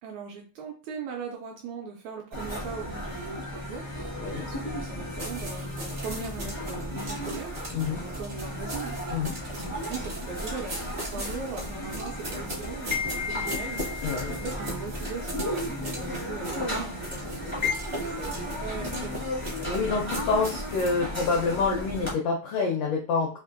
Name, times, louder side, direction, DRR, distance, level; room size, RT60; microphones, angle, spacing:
voice 1, 0.0-4.0 4.4-13.8 14.3-17.6 17.9-19.6, right 5 dB, 80° right, 1 dB, 1.7 m, -39 dB
sound 1, 2.3-22.1, left 1 dB, 30° left, 0.4 m, -34 dB
sound 2, 5.2-21.0, equal, 55° right, 0.7 m, -39 dB
voice 2, 7.7-8.0 9.1-9.3 14.0-14.3 17.8-18.0 19.6-23.4, left 4 dB, 85° left, 0 dB, 1.3 m, -27 dB
4.8 x 2.6 x 2.5 m, 0.34 s
omnidirectional pair, 3.7 m